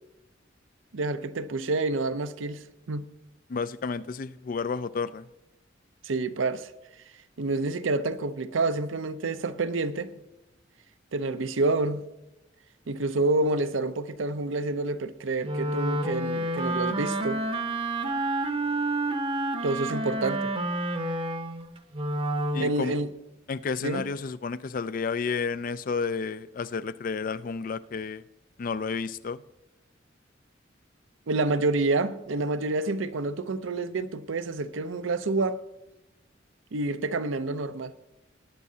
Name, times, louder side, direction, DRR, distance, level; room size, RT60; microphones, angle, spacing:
voice 1, 0.9-3.0 6.0-6.7 7.4-10.1 11.1-12.0 12.9-17.4 19.6-20.5 22.6-23.1 23.8-24.1 31.3-35.6 36.7-37.9, right 3 dB, 85° right, 0.6 m, -28 dB
voice 2, 3.5-5.2 22.5-22.9 23.5-28.2 28.6-29.4, left 5 dB, 45° left, 0.4 m, -31 dB
Wind instrument woodwind instrument, 15.4-22.8, right 1 dB, 30° right, 0.7 m, -29 dB
19.0 x 9.4 x 2.8 m
head